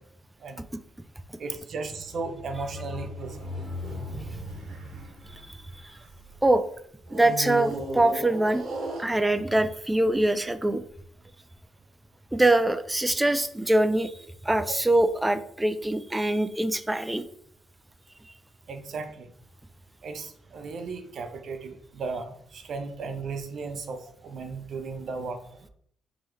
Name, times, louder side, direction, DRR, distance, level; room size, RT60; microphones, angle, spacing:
voice 1, 1.4-3.5 14.6-14.8 18.7-19.3 20.0-25.4, right 4 dB, 60° right, 7 dB, 0.6 m, -36 dB
sound 1, 1.6-6.3 7.1-9.6 10.3-10.4, equal, 80° right, 1.3 m, -36 dB
voice 2, 7.1-8.6 9.0-10.8 12.3-14.1 14.4-17.2, right 1 dB, 10° right, 12 dB, 0.3 m, -23 dB
3.7 x 2.9 x 3.2 m, 0.64 s
cardioid pair, 90°, 0 cm